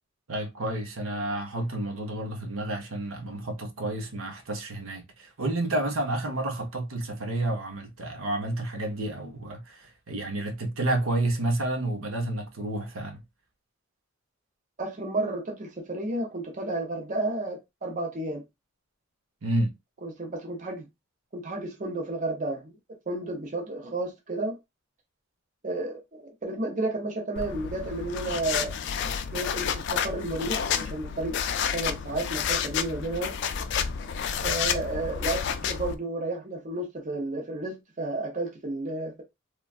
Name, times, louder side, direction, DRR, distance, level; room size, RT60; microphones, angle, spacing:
voice 1, 0.3-13.2 19.4-19.7, right 1 dB, 80° right, 0.8 m, -30 dB
voice 2, 14.8-18.4 20.0-20.9 21.3-22.8 23.1-24.6 25.6-28.7 29.3-31.4 31.7-33.3 34.4-39.2, right 2 dB, 40° right, 0.6 m, -32 dB
sound 1, 27.4-36.0, left 7 dB, 55° left, 0.4 m, -30 dB
3.2 x 2.2 x 2.4 m
head